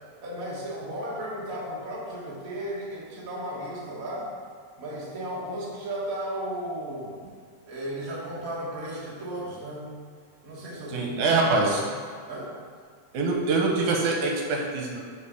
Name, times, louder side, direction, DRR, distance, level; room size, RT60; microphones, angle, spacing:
voice 1, 0.0-4.3 4.8-7.1 7.6-9.9 10.4-11.8 12.3-12.5, right 1 dB, 40° right, -5 dB, 1.3 m, -35 dB
voice 2, 10.9-11.8 13.1-15.0, right 3 dB, 75° right, 0 dB, 2.2 m, -24 dB
5.6 x 5.0 x 6.3 m, 2.1 s
omnidirectional pair, 3.6 m